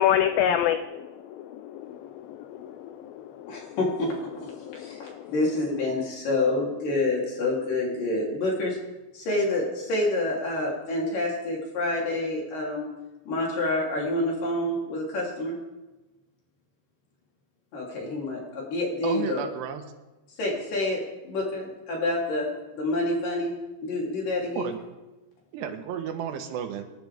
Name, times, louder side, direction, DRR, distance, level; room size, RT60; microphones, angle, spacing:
voice 1, 0.0-3.7 4.6-5.3, left 10 dB, 80° left, 10 dB, 2.1 m, -28 dB
voice 2, 3.5-4.5 4.7-8.8 9.1-12.9 13.3-15.6 17.7-19.4 20.4-23.6 23.8-24.7, left 2 dB, 55° left, -2 dB, 4.8 m, -28 dB
voice 3, 19.0-19.8 24.6-24.8 25.5-26.8, right 8 dB, 85° right, 6 dB, 3.3 m, -32 dB
27.0 x 12.0 x 3.5 m, 1.1 s
omnidirectional pair, 4.8 m